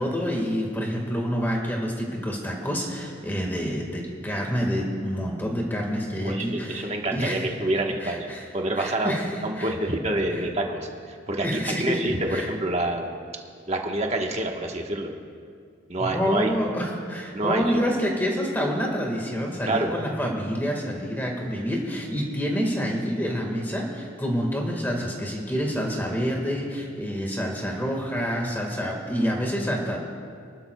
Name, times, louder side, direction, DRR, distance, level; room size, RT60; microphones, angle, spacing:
voice 1, 0.0-7.5 8.0-8.4 8.8-9.2 9.6-9.7 11.4-12.0 12.3-12.5 16.0-30.0, equal, 10° left, 0 dB, 1.7 m, -27 dB
voice 2, 6.2-13.1 13.7-15.1 15.9-16.5 17.3-17.8 19.6-19.9, right 1 dB, 35° right, 1 dB, 1.3 m, -27 dB
27.5 x 12.0 x 2.3 m, 2.2 s
head